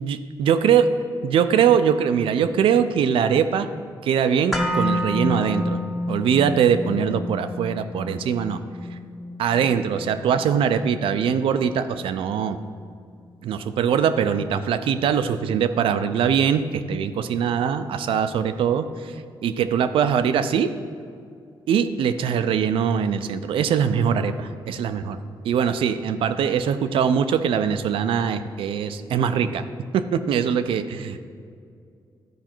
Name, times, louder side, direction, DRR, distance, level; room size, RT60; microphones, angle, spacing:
voice 1, 0.0-0.9 1.2-3.7 4.0-5.8 6.1-8.6 9.4-12.6 13.4-19.1 19.4-20.7 21.7-25.2 25.4-29.6 29.9-31.2, right 7 dB, 85° right, 10 dB, 0.5 m, -22 dB
sound 1, 4.5-12.6 12.9-13.0, left 1 dB, ahead, 1.1 m, -30 dB
12.0 x 5.0 x 4.5 m, 2.3 s
cardioid pair, 85°, 9 cm